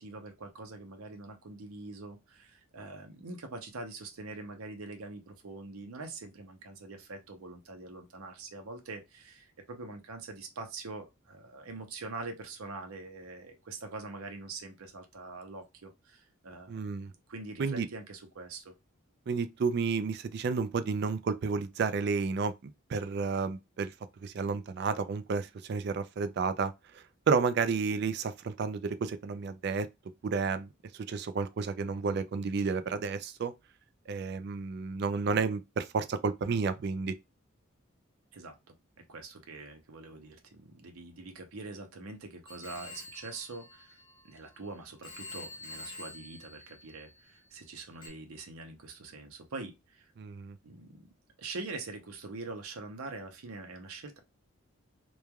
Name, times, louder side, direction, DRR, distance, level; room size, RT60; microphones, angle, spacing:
voice 1, 0.0-16.9 17.3-18.7 38.3-38.7 39.1-44.0 44.2-50.1 50.6-51.1 51.4-54.2, right 3 dB, 85° right, 0.7 m, -44 dB
voice 2, 16.7-17.1 17.6-17.9 19.3-22.5 22.9-23.9 24.2-29.9 30.2-33.5 34.1-37.2 50.2-50.6, right 5 dB, 50° right, 0.3 m, -31 dB
Telephone, 42.5-44.6 45.0-47.4 48.0-48.1, left 2 dB, 20° left, 0.5 m, -47 dB
3.1 x 2.3 x 2.2 m
head